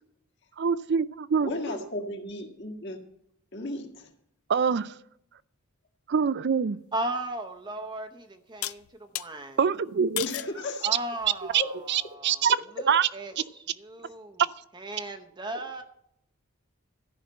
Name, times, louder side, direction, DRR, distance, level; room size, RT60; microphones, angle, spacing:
voice 1, 0.6-1.5 4.5-4.9 6.1-6.8 9.6-10.2 11.5-11.6 11.9-12.6 12.9-13.1, right 6 dB, 50° right, 17 dB, 0.4 m, -24 dB
voice 2, 1.4-3.0 3.5-4.1 10.2-10.9 11.6-11.7, left 2 dB, 50° left, 2 dB, 1.8 m, -34 dB
voice 3, 6.9-8.8 9.1-9.6 10.8-14.4 14.7-15.8, right 1 dB, 20° right, 5 dB, 0.7 m, -36 dB
sound 1, 7.2-7.3 8.6-9.3 10.2-10.6 11.2-11.6, left 17 dB, 75° left, 0.4 m, -34 dB
13.5 x 5.8 x 7.5 m, 0.74 s
head